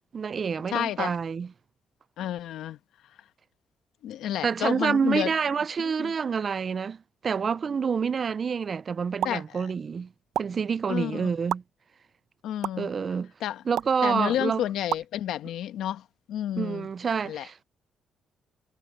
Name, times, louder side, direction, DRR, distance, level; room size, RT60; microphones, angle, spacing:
voice 1, 0.1-1.5 4.4-10.1 10.4-11.6 12.8-13.3 13.7-14.6 16.6-17.6, right 6 dB, 45° right, 0.4 m, -28 dB
voice 2, 0.7-1.1 2.2-2.8 4.0-5.3 6.0-6.1 9.2-9.7 10.9-11.3 12.4-12.9 13.4-13.6 14.0-16.0 16.3-16.9 17.3-17.5, left 11 dB, 80° left, 1.2 m, -30 dB
sound 1, 9.2-9.4 10.3-10.4 11.5-11.6 12.6-12.7 13.8-14.0 14.9-15.1, right 11 dB, 80° right, 0.8 m, -28 dB
cardioid pair, 90°, 0 cm